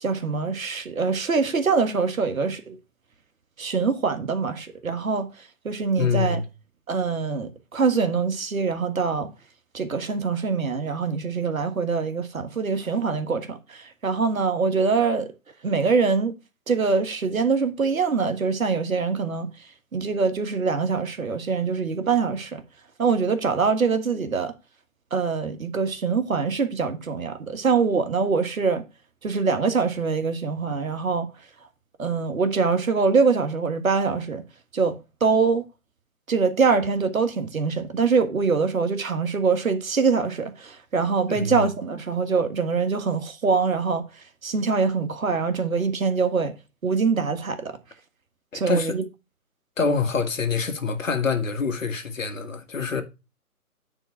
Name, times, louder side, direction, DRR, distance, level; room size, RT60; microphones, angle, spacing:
voice 1, 0.0-2.8 3.6-5.3 5.6-6.4 6.9-9.3 9.7-15.3 15.6-16.3 16.7-19.5 19.9-22.6 23.0-24.5 25.1-28.8 29.2-31.3 32.0-34.4 34.7-35.6 36.3-44.0 44.4-46.5 46.8-47.7 48.5-49.0, right 5 dB, 60° right, 1.6 m, -24 dB
voice 2, 6.0-6.4 41.3-41.6 48.5-49.0 49.8-53.0, left 5 dB, 55° left, 1.9 m, -25 dB
9.9 x 4.0 x 4.6 m
figure-of-eight pair, 160°, 46 cm